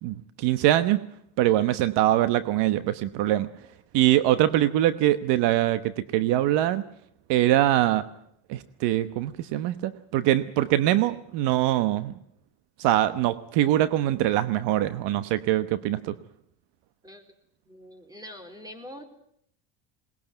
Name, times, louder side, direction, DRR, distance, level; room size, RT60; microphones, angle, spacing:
voice 1, 0.0-1.0 1.4-3.5 3.9-6.8 7.3-8.0 8.5-12.1 12.8-16.1, right 13 dB, 70° right, 13 dB, 1.2 m, -23 dB
voice 2, 17.7-19.0, equal, 10° right, 7 dB, 4.1 m, -44 dB
21.5 x 20.0 x 9.1 m, 0.71 s
cardioid pair, 125°, 43 cm